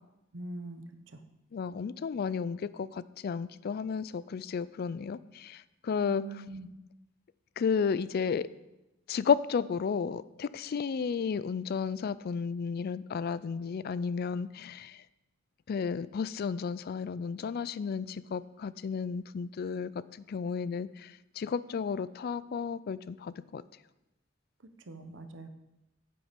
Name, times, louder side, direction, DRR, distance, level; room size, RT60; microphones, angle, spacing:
voice 1, 0.3-1.2 6.1-6.7 24.9-25.5, right 2 dB, 70° right, 8 dB, 0.9 m, -43 dB
voice 2, 1.5-6.2 7.6-8.5 9.1-15.0 15.7-19.9 20.3-23.6, left 6 dB, 55° left, 17 dB, 0.3 m, -33 dB
9.6 x 7.7 x 5.1 m, 0.96 s
head